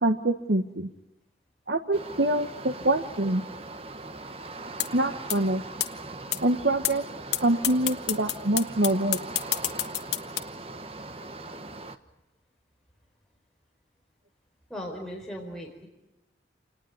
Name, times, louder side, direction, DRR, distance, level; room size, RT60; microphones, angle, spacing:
voice 1, 0.0-0.9 1.7-3.4 4.9-5.6 6.4-7.0 7.4-9.2, right 1 dB, 65° right, 7 dB, 1.3 m, -25 dB
sound 1, 1.9-12.0, right 2 dB, 30° right, 1.3 m, -40 dB
sound 2, 4.8-4.9 5.3-5.4 5.8-5.9 6.3-6.4 6.8-6.9 7.3-7.4 7.6-10.4, left 13 dB, 70° left, 1.5 m, -26 dB
voice 2, 14.7-15.9, equal, 5° left, -2 dB, 4.5 m, -38 dB
27.5 x 19.5 x 9.4 m, 1.0 s
head